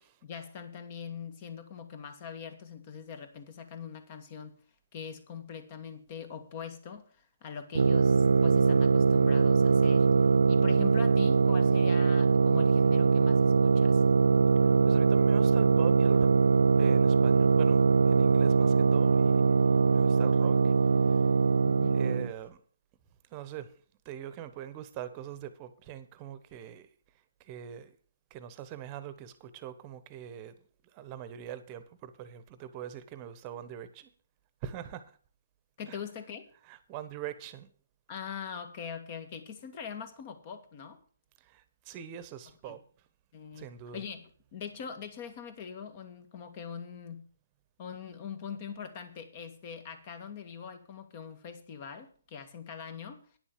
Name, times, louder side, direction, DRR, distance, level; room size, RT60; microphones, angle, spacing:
voice 1, 0.0-4.6 4.9-10.1 10.5-14.0 21.6-22.0 35.8-36.5 38.1-41.0 42.7-42.8 43.3-43.7 43.9-47.3 47.8-53.2, left 7 dB, 35° left, 1.7 m, -42 dB
sound 1, 7.8-22.3, right 4 dB, 85° right, 0.4 m, -22 dB
voice 2, 14.8-16.3 16.8-19.4 19.9-20.7 21.0-21.2 21.9-22.6 23.3-23.7 24.0-26.9 27.4-27.9 28.3-30.6 30.9-34.1 34.6-35.1 35.9-36.0 36.7-37.7 41.4-42.8 43.5-44.0, right 10 dB, 25° right, 1.1 m, -43 dB
10.5 x 7.2 x 6.7 m
hypercardioid pair, 155°, 0 cm